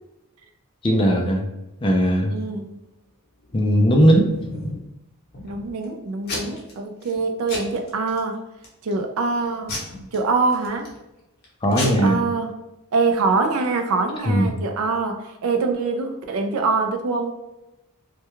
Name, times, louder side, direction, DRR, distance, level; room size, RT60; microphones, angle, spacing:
voice 1, 0.8-1.5 1.8-2.4 3.5-4.3 11.6-12.2 14.2-14.5, equal, 25° left, 1 dB, 0.4 m, -18 dB
voice 2, 2.3-2.8 5.4-8.4 8.8-9.8 10.1-10.9 11.8-12.5 12.9-17.3, right 4 dB, 70° right, 6 dB, 0.4 m, -24 dB
Packing tape duct tape / Tearing, 3.5-4.9 5.3-5.8 6.3-6.7 7.0-7.2 7.5-8.2 8.6-9.0 9.7-11.0 11.4-11.5 11.7-11.9, left 2 dB, 45° left, 0.8 m, -32 dB
2.2 x 2.2 x 2.9 m, 0.93 s
head